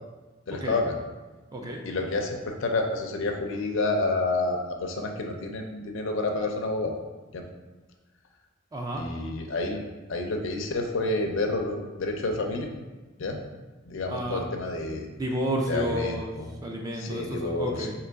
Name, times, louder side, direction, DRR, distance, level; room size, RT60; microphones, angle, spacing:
voice 1, 0.5-0.9 1.8-7.0 7.3-7.4 8.9-12.7 13.2-13.4 13.9-15.1 15.7-16.6 16.9-17.9, left 2 dB, 70° left, 2 dB, 0.5 m, -29 dB
voice 2, 8.7-9.0 14.1-14.4 15.2-16.3 16.6-17.9, equal, 20° right, 0 dB, 0.3 m, -31 dB
3.8 x 3.0 x 3.4 m, 1.2 s
head